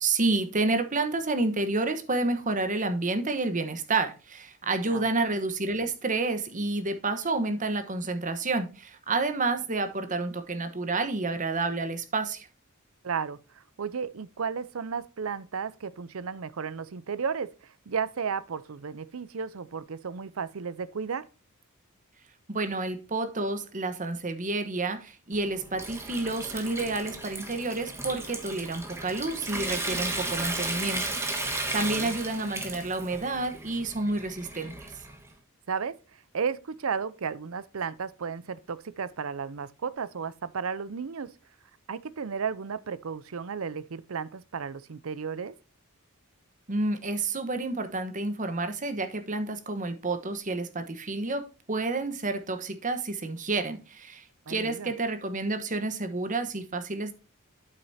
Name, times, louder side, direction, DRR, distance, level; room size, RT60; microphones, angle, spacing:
voice 1, 0.0-12.5 22.5-31.0 31.5-34.9 46.7-57.1, right 3 dB, 35° right, 1.2 m, -29 dB
voice 2, 13.0-13.4 13.8-17.5 17.9-21.2 31.8-32.2 35.7-35.9 36.3-41.3 41.9-45.5 54.5-54.9, right 6 dB, 70° right, 0.6 m, -33 dB
Water tap faucet / Sink (filling or washing) / Trickle dribble, 25.3-35.3, right 2 dB, 10° right, 1.6 m, -35 dB
9.0 x 8.0 x 2.7 m
head